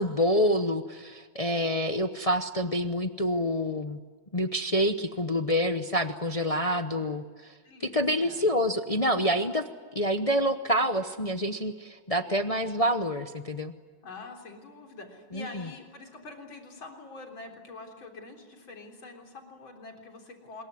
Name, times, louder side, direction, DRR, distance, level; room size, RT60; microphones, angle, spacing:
voice 1, 0.0-4.0 4.3-7.5 7.9-9.6 9.9-13.7 15.3-15.6, equal, 40° left, 8 dB, 0.5 m, -27 dB
voice 2, 7.6-8.5 9.5-9.6 14.0-20.6, left 3 dB, 75° left, 2 dB, 4.5 m, -45 dB
26.0 x 22.0 x 9.6 m, 1.5 s
omnidirectional pair, 2.2 m